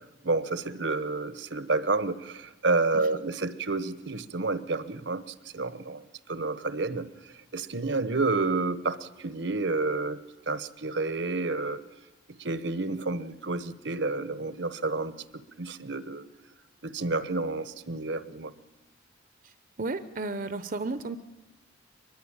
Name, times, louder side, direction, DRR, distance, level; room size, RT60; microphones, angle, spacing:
voice 1, 0.2-5.2 5.5-6.0 6.3-7.1 7.5-10.2 10.5-11.8 12.4-15.1 15.6-16.2 16.8-18.5, right 3 dB, 70° right, 14 dB, 1.2 m, -29 dB
voice 2, 19.8-21.2, right 3 dB, 45° right, 11 dB, 0.9 m, -33 dB
23.0 x 21.0 x 8.9 m, 1.1 s
head